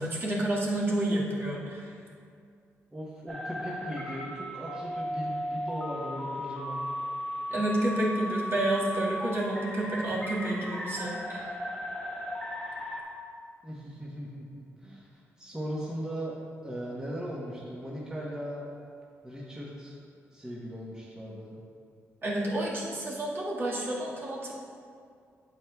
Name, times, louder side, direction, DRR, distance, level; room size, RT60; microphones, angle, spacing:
voice 1, 0.0-1.9 7.5-11.5 22.2-24.5, right 1 dB, 45° right, -6 dB, 1.8 m, -30 dB
voice 2, 2.9-6.8 13.6-16.4 16.6-18.7 19.2-20.0 20.3-21.6, equal, 15° right, -6 dB, 1.1 m, -38 dB
sound 1, 3.3-13.0, equal, 5° left, 1.6 m, -36 dB
8.6 x 7.4 x 2.3 m, 2.3 s
cardioid pair, 85°, 5 cm